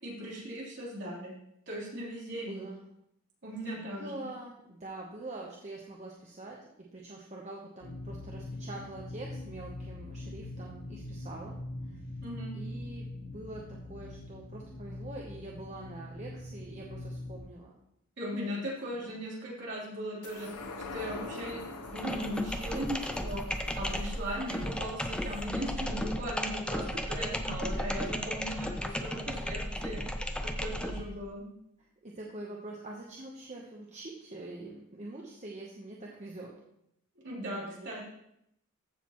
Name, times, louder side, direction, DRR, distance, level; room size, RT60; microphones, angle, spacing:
voice 1, 0.0-1.3 1.7-2.7 3.4-4.2 12.2-12.5 18.2-20.5 20.9-21.6 21.9-23.4 23.7-30.0 30.4-31.4 37.2-38.0, equal, 50° right, -5 dB, 3.6 m, -38 dB
voice 2, 2.3-2.8 3.7-6.6 6.9-11.6 11.8-12.0 12.5-17.7 18.5-18.6 19.0-19.2 27.6-27.9 29.1-29.8 31.8-36.5 37.4-37.9, right 2 dB, 30° right, -2 dB, 1.0 m, -45 dB
sound 1, 7.8-17.4, left 1 dB, 70° left, 1.3 m, -42 dB
sound 2, 20.2-27.0 27.4-27.5, left 3 dB, 90° left, 1.0 m, -45 dB
sound 3, 21.9-31.2, equal, 5° left, 0.5 m, -35 dB
14.5 x 6.6 x 3.0 m, 0.77 s
head